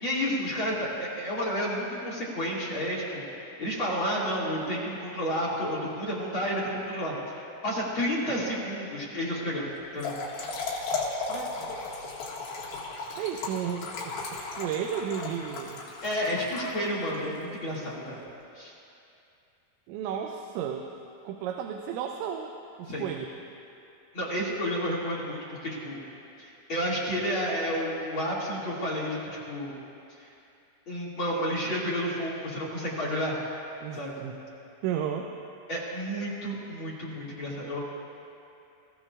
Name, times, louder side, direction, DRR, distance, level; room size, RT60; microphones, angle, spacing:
voice 1, 0.0-3.2 3.6-9.7 9.9-10.1 16.0-18.2 18.5-18.7 22.9-23.1 24.1-26.0 26.4-29.2 29.5-29.7 30.9-33.4 34.0-34.1 35.7-37.8, equal, 40° left, -7 dB, 2.2 m, -31 dB
Trickle dribble / Fill (with liquid), 9.8-17.2, left 3 dB, 60° left, 3.3 m, -35 dB
voice 2, 11.3-11.9 13.2-15.8 19.9-20.9 21.2-22.5 22.8-23.3 33.8-34.4 34.8-35.3, right 8 dB, 85° right, 3 dB, 3.0 m, -33 dB
25.0 x 15.0 x 2.4 m, 2.6 s
omnidirectional pair, 5.2 m